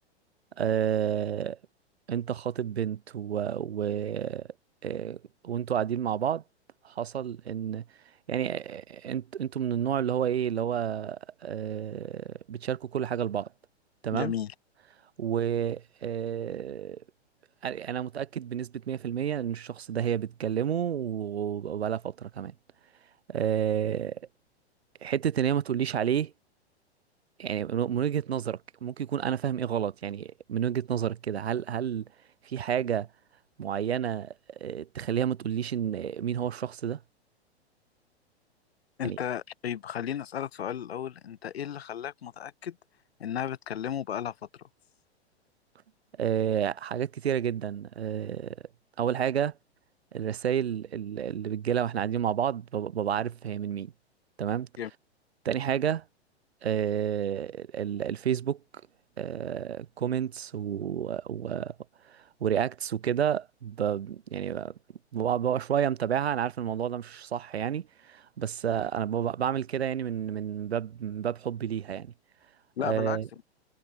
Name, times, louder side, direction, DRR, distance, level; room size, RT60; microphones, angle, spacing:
voice 1, 0.6-1.6 2.1-4.5 4.8-6.4 6.8-7.8 8.3-13.5 14.0-14.3 15.2-17.0 17.6-22.5 23.3-24.3 25.0-26.3 27.4-32.1 32.4-33.1 33.6-37.0 39.0-39.2 46.2-48.6 49.0-49.5 50.1-53.9 54.4-54.7 55.4-56.0 56.6-58.6 59.2-61.7 62.0-64.7 65.1-72.1 72.8-73.3, right 9 dB, 70° right, 1.6 m, -30 dB
voice 2, 14.1-14.5 39.0-42.8 43.2-44.7 54.8-54.9 72.8-73.2, left 9 dB, 65° left, 1.9 m, -34 dB
figure-of-eight pair, 105°, 33 cm